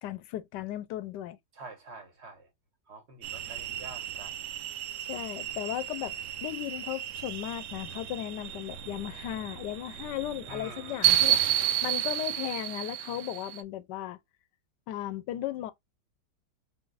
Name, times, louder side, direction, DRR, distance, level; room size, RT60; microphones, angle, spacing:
voice 1, 0.0-1.4 5.1-6.1 6.4-14.2 14.9-15.7, left 13 dB, 85° left, 1.2 m, -36 dB
voice 2, 1.5-2.5 2.9-4.4 10.5-11.0, right 3 dB, 45° right, 1.3 m, -47 dB
sound 1, 3.2-13.6, right 12 dB, 80° right, 1.2 m, -32 dB
3.9 x 3.7 x 2.5 m
omnidirectional pair, 1.8 m